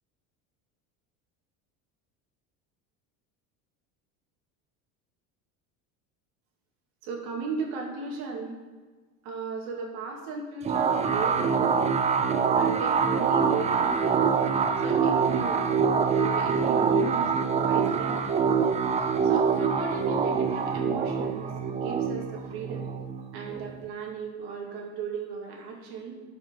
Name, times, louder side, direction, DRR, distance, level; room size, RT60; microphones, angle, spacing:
voice 1, 7.0-8.6 9.2-12.0 12.5-14.3 14.8-15.6 16.1-17.3 17.6-18.4 19.2-21.5 21.8-22.9 23.3-26.2, right 4 dB, 70° right, 0 dB, 2.2 m, -36 dB
sound 1, 10.7-23.9, right 6 dB, 20° right, 0.4 m, -25 dB
12.0 x 5.4 x 3.8 m, 1.4 s
supercardioid pair, 120°, 38 cm